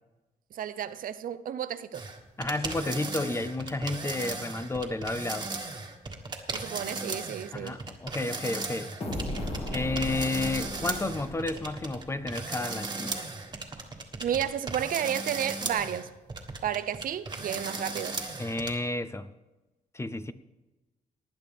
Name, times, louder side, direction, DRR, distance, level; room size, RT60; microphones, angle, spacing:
voice 1, 0.5-2.0 6.5-7.8 14.2-16.1 16.6-18.1, right 9 dB, 65° right, 0.6 m, -32 dB
sound 1, 1.9-18.7, right 3 dB, 30° right, 1.6 m, -36 dB
voice 2, 2.4-5.5 7.5-8.9 9.7-13.2 18.4-19.3 19.9-20.3, left 2 dB, 15° left, 0.6 m, -31 dB
sound 2, 9.0-12.7, left 1 dB, 40° left, 2.4 m, -37 dB
19.0 x 10.0 x 3.5 m
cardioid pair, 120°, 15 cm